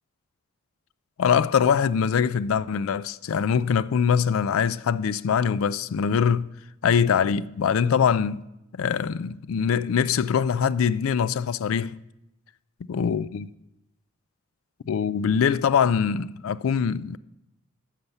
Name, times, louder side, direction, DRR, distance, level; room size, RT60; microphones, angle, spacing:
voice 1, 1.2-6.5 6.8-8.4 8.7-12.0 12.9-13.5 14.9-17.2, left 7 dB, 80° left, 0.4 m, -23 dB
13.5 x 5.7 x 8.1 m
head